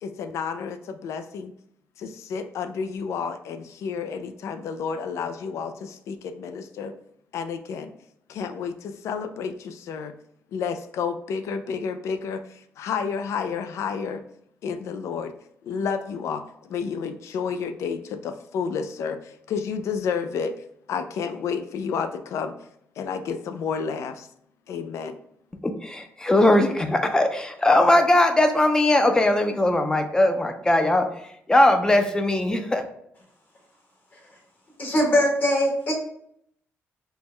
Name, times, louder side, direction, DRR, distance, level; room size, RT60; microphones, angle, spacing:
voice 1, 0.0-1.5 2.0-6.9 7.3-7.9 8.3-10.1 10.5-14.2 14.6-15.3 15.6-20.5 20.9-22.6 23.0-24.3 24.7-25.2, left 6 dB, 80° left, 9 dB, 0.4 m, -30 dB
voice 2, 25.6-31.1 31.5-32.8, left 1 dB, 15° left, 6 dB, 0.4 m, -20 dB
voice 3, 34.8-35.9, equal, 40° left, -1 dB, 1.2 m, -21 dB
4.4 x 2.2 x 3.2 m, 0.70 s
cardioid pair, 125°, 5 cm